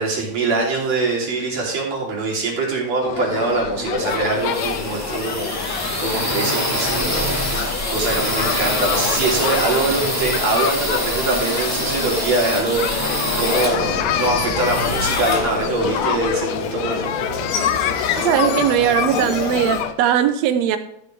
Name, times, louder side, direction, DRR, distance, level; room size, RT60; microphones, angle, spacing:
voice 1, 0.0-17.3, right 3 dB, 50° right, -3 dB, 4.0 m, -23 dB
sound 1, 3.0-19.9, left 9 dB, 85° left, 1.5 m, -26 dB
sound 2, 3.6-16.3, equal, 5° left, 1.4 m, -25 dB
sound 3, 13.6-19.8, left 3 dB, 70° left, 3.5 m, -29 dB
voice 2, 18.2-20.8, right 10 dB, 80° right, 9 dB, 1.6 m, -19 dB
14.0 x 8.1 x 3.3 m, 0.74 s
omnidirectional pair, 3.9 m